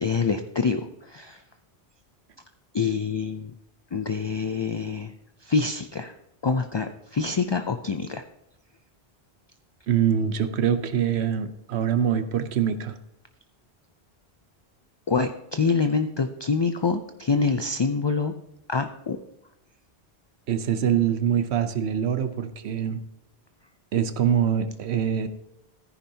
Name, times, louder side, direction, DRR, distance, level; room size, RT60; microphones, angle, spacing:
voice 1, 0.0-1.4 2.7-3.5 3.9-5.1 5.4-6.1 6.4-8.2 15.1-18.3 18.7-19.2, left 4 dB, 45° left, 8 dB, 0.3 m, -26 dB
voice 2, 9.9-13.0 20.5-23.0 23.9-25.3, right 8 dB, 85° right, 10 dB, 1.0 m, -24 dB
14.0 x 9.9 x 2.8 m, 0.87 s
omnidirectional pair, 1.1 m